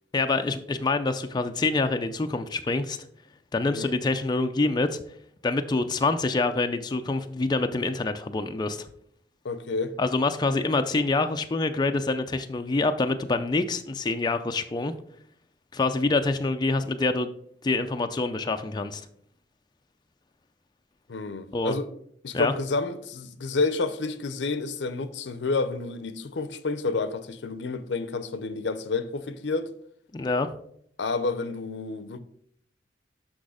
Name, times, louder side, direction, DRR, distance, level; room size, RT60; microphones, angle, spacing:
voice 1, 0.1-3.0 3.5-5.0 5.4-8.9 10.0-14.9 15.7-17.3 17.6-19.0 21.5-21.7 22.3-22.5 30.1-30.5, left 3 dB, 25° left, 0.4 m, -26 dB
voice 2, 9.4-10.0 21.1-21.9 22.2-29.7 31.0-32.2, left 3 dB, 75° left, 0.6 m, -29 dB
6.2 x 6.1 x 4.9 m
head